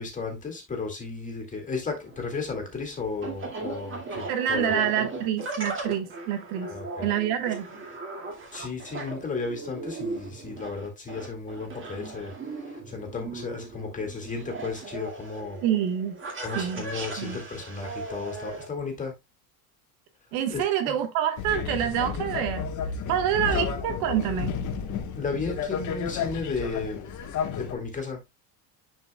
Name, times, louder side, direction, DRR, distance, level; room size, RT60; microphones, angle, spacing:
voice 1, 0.0-4.8 6.6-7.1 8.5-15.6 16.4-19.2 20.5-21.0 23.5-23.7 25.1-27.1 27.5-28.2, left 4 dB, 15° left, 2.0 m, -34 dB
sound 1, 2.0-18.6, right 3 dB, 25° right, 2.2 m, -38 dB
voice 2, 4.3-7.7 15.6-16.2 16.5-16.8 17.2-17.4 20.3-22.7 23.1-24.5, right 10 dB, 75° right, 1.4 m, -27 dB
sound 2, 21.4-27.7, left 6 dB, 40° left, 1.2 m, -32 dB
10.5 x 4.6 x 2.2 m
cardioid pair, 150°, 45 cm